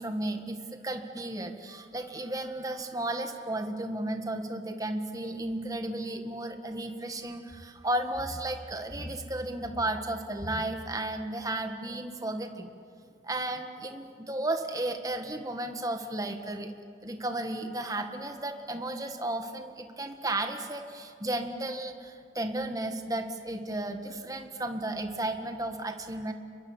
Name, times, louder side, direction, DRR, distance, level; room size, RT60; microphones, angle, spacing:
voice 1, 0.0-12.7 13.2-16.7 17.0-26.3, right 1 dB, 20° right, 6 dB, 1.7 m, -34 dB
29.0 x 22.5 x 8.1 m, 2.3 s
head